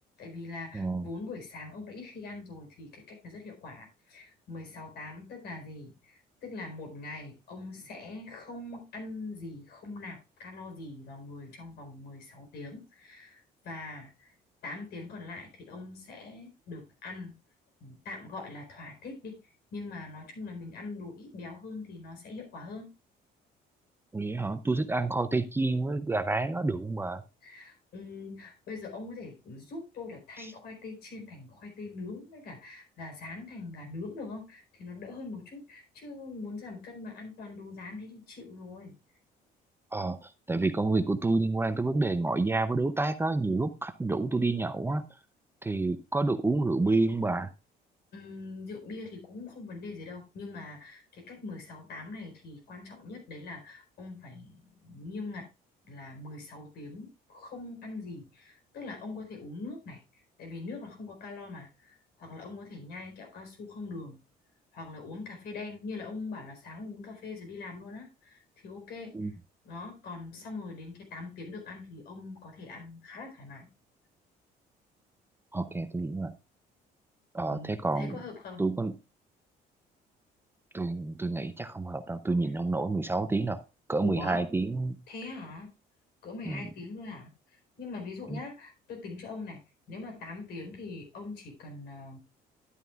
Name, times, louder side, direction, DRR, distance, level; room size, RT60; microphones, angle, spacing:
voice 1, 0.2-14.4 14.6-17.3 17.8-22.9 27.4-38.9 48.1-55.5 55.8-64.2 64.7-69.3 69.6-73.7 77.5-78.6 84.0-84.4 85.1-85.7 86.2-89.6 89.9-92.2, left 3 dB, 70° left, 3 dB, 4.3 m, -42 dB
voice 2, 0.7-1.0 24.1-27.2 39.9-40.2 40.5-45.1 45.6-47.5 69.1-69.3 75.5-76.3 77.3-78.2 78.6-78.9 80.7-83.6 83.9-85.0 86.5-86.6 88.3-88.4, right 3 dB, 15° right, 10 dB, 0.6 m, -29 dB
11.0 x 9.0 x 2.4 m, 0.28 s
cardioid pair, 110°, 17 cm